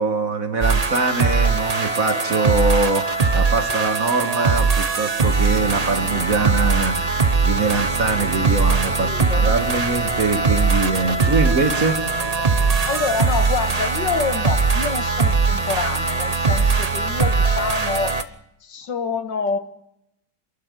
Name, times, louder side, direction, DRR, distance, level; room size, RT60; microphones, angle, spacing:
voice 1, 0.0-12.0, right 3 dB, 45° right, 2.1 m, -23 dB
sound 1, 0.6-18.2, right 4 dB, 25° right, 0.8 m, -20 dB
voice 2, 8.6-9.5 10.8-11.9 12.4-12.5 12.8-18.3 18.6-19.6, left 5 dB, 70° left, 2.2 m, -27 dB
28.0 x 12.0 x 9.3 m
omnidirectional pair, 2.1 m